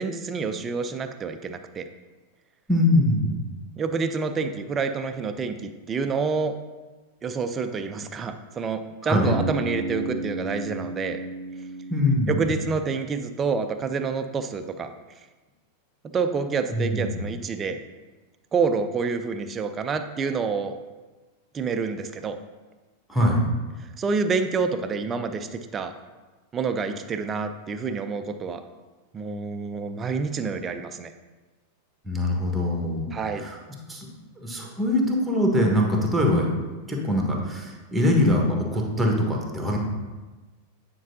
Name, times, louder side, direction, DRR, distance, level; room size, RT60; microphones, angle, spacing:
voice 1, 0.0-1.8 3.8-6.6 7.2-11.2 12.3-14.9 16.1-17.8 18.5-20.8 21.5-22.4 24.0-25.9 26.5-28.6 29.1-31.1 33.1-33.4, right 5 dB, 20° right, 8 dB, 0.5 m, -28 dB
voice 2, 2.7-3.4 9.0-9.3 11.9-12.5 16.7-17.2 23.1-23.4 32.0-33.1 33.4-33.6 33.9-34.1 34.4-36.5 36.9-39.8, left 1 dB, 5° right, 0 dB, 1.3 m, -23 dB
Bass guitar, 9.3-13.3, right 2 dB, 40° left, 0.9 m, -34 dB
9.4 x 4.6 x 2.7 m, 1.2 s
figure-of-eight pair, 90°, 0 cm